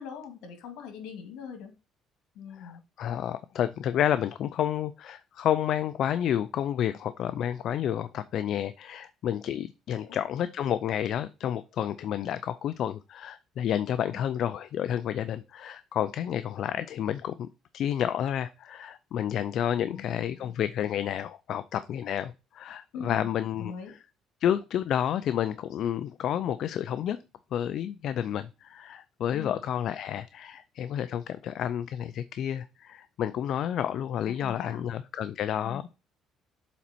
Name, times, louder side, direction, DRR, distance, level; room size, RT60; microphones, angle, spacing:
voice 1, 0.0-1.7 2.4-2.8 10.0-10.2 14.1-14.2 19.9-20.3 22.9-23.3 23.6-23.9 29.3-29.6 34.4-34.8 35.6-35.8, left 6 dB, 85° left, 7 dB, 2.0 m, -41 dB
voice 2, 2.5-17.5 17.7-24.0 24.4-27.2 27.5-36.0, left 10 dB, 60° left, 13 dB, 0.4 m, -30 dB
7.2 x 4.3 x 4.2 m, 0.29 s
cardioid pair, 120°, 0 cm